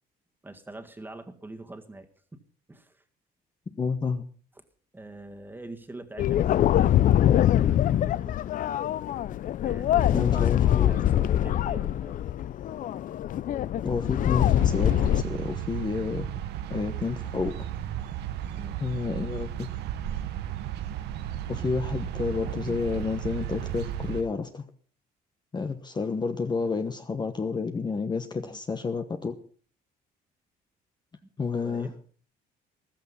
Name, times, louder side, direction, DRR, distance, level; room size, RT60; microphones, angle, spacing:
voice 1, 0.4-2.4 2.7-3.0 4.9-8.4 9.6-12.3 18.5-18.8 28.4-28.6 31.6-31.9, right 2 dB, 10° right, 5 dB, 1.9 m, -43 dB
voice 2, 3.8-4.2 10.1-11.3 13.8-16.3 16.7-17.6 18.8-19.7 21.5-24.6 25.5-29.4 31.4-31.9, left 4 dB, 25° left, 8 dB, 1.2 m, -30 dB
sound 1, 6.2-15.2, left 12 dB, 50° left, 0.6 m, -23 dB
sound 2, 14.6-24.2, right 11 dB, 80° right, 1.3 m, -34 dB
14.5 x 13.0 x 5.6 m, 0.42 s
cardioid pair, 110°, 17 cm